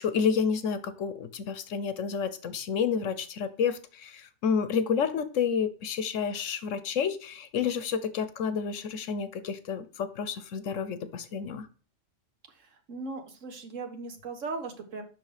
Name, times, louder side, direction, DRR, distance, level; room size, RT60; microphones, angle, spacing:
voice 1, 0.0-11.7, left 6 dB, 80° left, 12 dB, 1.2 m, -30 dB
voice 2, 12.5-15.0, right 3 dB, 85° right, 4 dB, 1.7 m, -38 dB
6.8 x 5.9 x 5.0 m, 0.39 s
omnidirectional pair, 1.3 m